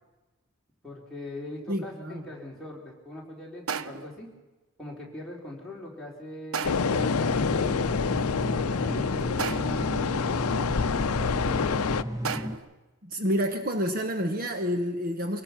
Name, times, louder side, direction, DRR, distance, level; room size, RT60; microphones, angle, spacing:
voice 1, 0.8-4.3 4.8-7.9 8.6-11.9, left 1 dB, ahead, -4 dB, 3.8 m, -41 dB
voice 2, 1.7-2.3 13.0-15.4, equal, 40° right, 6 dB, 1.0 m, -29 dB
sound 1, 3.7-4.2 6.5-7.0 9.4-9.9 12.2-12.8, right 6 dB, 70° right, 0.7 m, -34 dB
sound 2, 6.6-12.0, left 5 dB, 85° left, 0.6 m, -27 dB
sound 3, 6.8-12.6, equal, 15° right, 1.0 m, -34 dB
24.0 x 18.0 x 6.0 m, 1.2 s
head